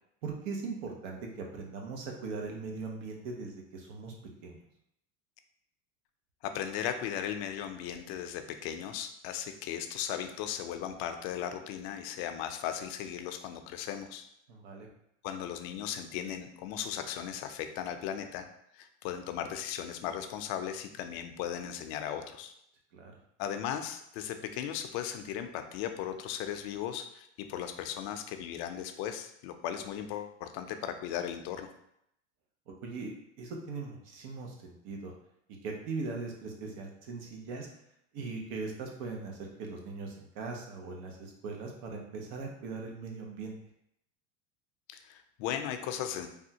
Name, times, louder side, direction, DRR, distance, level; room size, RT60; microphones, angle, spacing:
voice 1, 0.2-4.1 4.4-4.6 14.5-14.9 22.9-23.2 32.7-33.1 33.4-35.1 35.6-37.7 38.1-43.5, right 4 dB, 75° right, 1 dB, 0.9 m, -40 dB
voice 2, 6.4-14.3 15.2-18.4 18.7-22.5 23.4-31.7 44.9-46.3, left 9 dB, 60° left, 7 dB, 0.5 m, -37 dB
3.4 x 2.3 x 2.7 m, 0.76 s
supercardioid pair, 120°, 36 cm